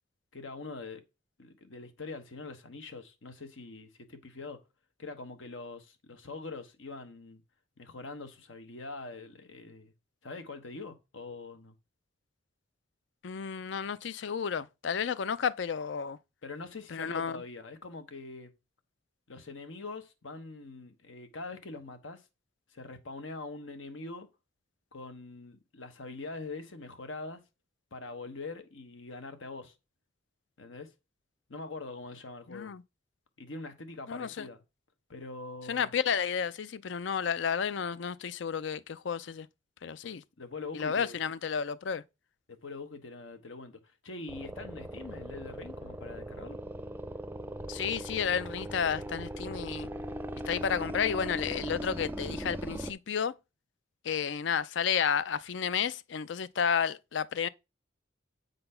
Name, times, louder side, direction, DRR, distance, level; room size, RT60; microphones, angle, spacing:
voice 1, 0.3-1.0 1.4-4.6 5.0-7.4 7.8-9.9 10.2-11.7 16.4-18.5 19.3-22.3 22.7-24.3 24.9-27.4 27.9-29.7 30.6-30.9 31.5-32.7 33.4-34.6 35.1-35.9 40.4-41.2 42.5-46.6, left 3 dB, 85° left, 1.2 m, -43 dB
voice 2, 13.2-16.2 16.9-17.4 32.5-32.8 34.1-34.5 35.7-39.5 39.8-40.2 40.7-42.0 47.7-49.9 50.5-53.3 54.0-57.5, left 7 dB, 70° left, 0.4 m, -31 dB
sound 1, 44.3-52.9, right 1 dB, 10° right, 0.4 m, -39 dB
7.8 x 4.1 x 5.5 m
head